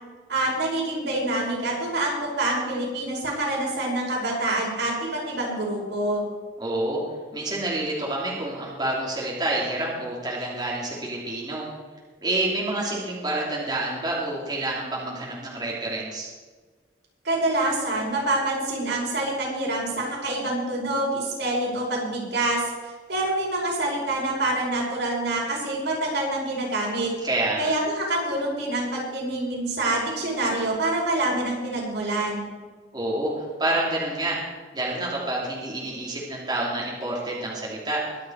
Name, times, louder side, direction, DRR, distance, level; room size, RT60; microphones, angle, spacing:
voice 1, 0.3-6.2 17.2-22.6 23.1-27.1 27.6-32.5, right 2 dB, 80° right, -3 dB, 5.4 m, -26 dB
voice 2, 6.6-7.0 7.3-11.6 12.2-16.3 27.2-27.7 32.9-34.4 34.7-38.0, right 2 dB, 25° right, -5 dB, 3.0 m, -28 dB
23.0 x 7.9 x 4.7 m, 1.4 s
head